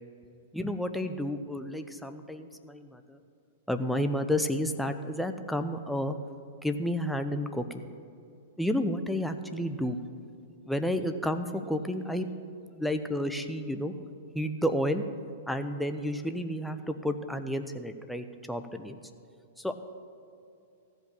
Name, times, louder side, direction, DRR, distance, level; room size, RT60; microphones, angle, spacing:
voice 1, 0.5-3.2 3.7-6.2 6.6-7.6 8.6-10.0 10.7-12.3 12.7-13.9 14.3-15.0 15.5-19.0 19.6-19.7, equal, ahead, 7 dB, 0.7 m, -31 dB
14.5 x 5.3 x 8.7 m, 2.6 s
figure-of-eight pair, 105°, 0 cm